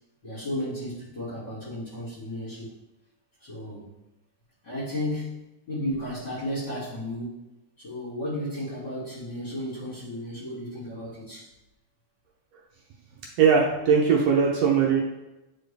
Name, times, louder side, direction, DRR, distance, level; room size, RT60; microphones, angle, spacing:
voice 1, 0.2-2.7 3.4-3.9 4.6-7.4 7.8-11.5, left 1 dB, 35° left, -10 dB, 3.0 m, -34 dB
voice 2, 13.4-15.0, right 6 dB, 70° right, -1 dB, 1.7 m, -20 dB
9.5 x 4.3 x 3.4 m, 0.99 s
omnidirectional pair, 3.5 m